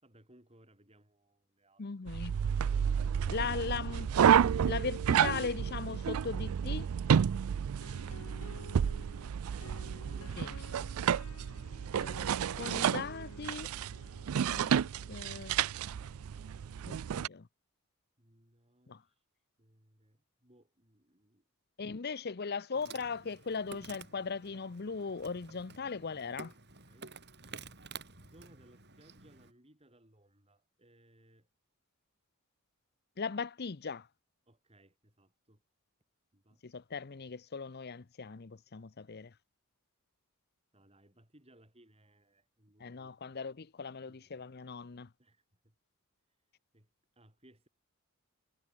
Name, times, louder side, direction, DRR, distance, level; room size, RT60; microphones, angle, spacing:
voice 1, 0.0-2.2 7.7-10.8 18.2-19.2 19.6-21.4 26.8-27.1 28.2-31.5 34.5-35.6 36.3-36.6 40.7-43.2 44.0-44.3 45.2-45.7 46.7-47.7, right 1 dB, 30° right, 6.6 m, -64 dB
voice 2, 1.8-2.3 3.3-4.4 4.6-6.9 10.4-10.5 12.6-13.7 14.5-14.7 15.1-15.6 16.8-17.5 18.9-19.0 21.8-26.5 33.2-34.1 36.6-39.3 42.8-45.1, left 5 dB, 45° left, 0.7 m, -38 dB
sound 1, 2.1-17.3, right 8 dB, 80° right, 0.4 m, -31 dB
sound 2, 7.8-17.4, left 2 dB, 85° left, 4.2 m, -54 dB
Insect, 22.7-29.5, right 5 dB, 50° right, 7.7 m, -51 dB
head